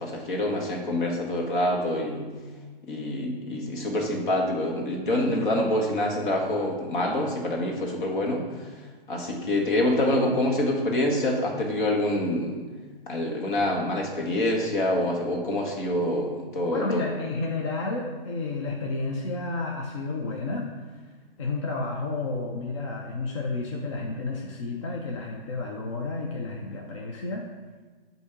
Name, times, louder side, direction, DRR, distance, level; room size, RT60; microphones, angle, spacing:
voice 1, 0.0-2.3 2.9-8.4 9.1-12.6 13.1-17.0, left 1 dB, 55° left, 0 dB, 1.4 m, -26 dB
voice 2, 16.7-20.7 21.4-27.4, left 3 dB, 30° left, -1 dB, 0.5 m, -31 dB
8.2 x 2.7 x 5.7 m, 1.4 s
hypercardioid pair, 160°, 30 cm